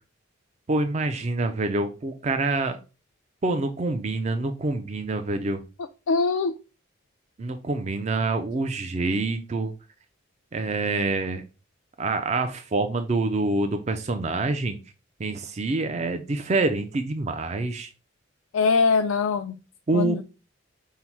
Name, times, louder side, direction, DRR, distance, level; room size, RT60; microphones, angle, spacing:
voice 1, 0.7-2.8 3.4-5.6 7.4-9.7 10.5-11.4 12.0-14.8 15.2-17.9 19.9-20.2, right 2 dB, 35° right, 0.4 m, -26 dB
voice 2, 6.1-6.5 18.5-19.5 19.9-20.2, left 4 dB, 90° left, 0.4 m, -22 dB
5.5 x 2.1 x 4.4 m
head